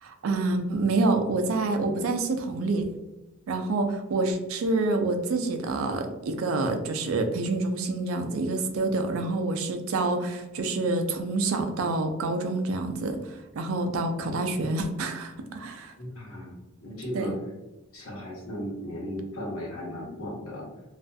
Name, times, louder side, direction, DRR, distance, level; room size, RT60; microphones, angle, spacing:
voice 1, 0.0-2.9 3.5-13.2 13.5-15.9 17.1-17.3, right 3 dB, 70° right, 6 dB, 0.4 m, -27 dB
voice 2, 16.0-16.6 16.8-17.3 17.9-20.7, equal, 90° left, -4 dB, 1.0 m, -36 dB
2.4 x 2.2 x 2.5 m, 1.0 s
head